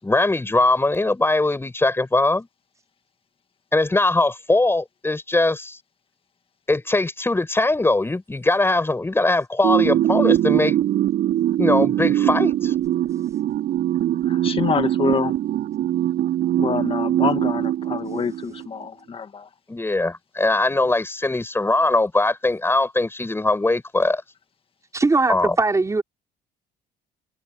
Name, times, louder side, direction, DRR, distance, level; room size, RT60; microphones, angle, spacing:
voice 1, 0.0-2.5 3.7-5.8 6.7-10.8 11.6-12.7 19.7-24.2 25.3-25.6, left 2 dB, 15° left, 6.3 m, -21 dB
sound 1, 9.6-18.6, right 12 dB, 70° right, 6.1 m, -22 dB
voice 2, 14.3-15.3 16.6-19.5, left 6 dB, 30° left, 1.9 m, -26 dB
voice 3, 24.9-26.0, right 3 dB, 20° right, 5.7 m, -20 dB
cardioid pair, 110°, 17 cm